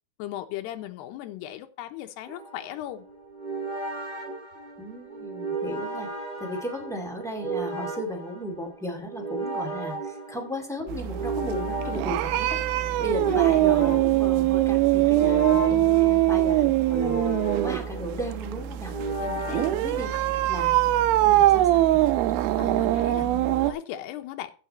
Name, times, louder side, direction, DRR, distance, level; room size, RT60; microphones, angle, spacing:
voice 1, 0.2-3.0 13.0-13.7 15.7-16.3 19.2-19.6 20.1-20.2 22.6-24.5, left 13 dB, 85° left, 3.1 m, -38 dB
sound 1, 2.3-20.6, right 2 dB, 20° right, 3.1 m, -35 dB
voice 2, 4.8-6.1 6.4-17.2 17.6-19.1 19.5-20.1 20.5-20.8 21.2-22.0 23.1-23.3, equal, ahead, 0.8 m, -35 dB
sound 2, 10.9-23.7, right 14 dB, 80° right, 2.3 m, -23 dB
15.5 x 5.9 x 4.2 m
omnidirectional pair, 4.7 m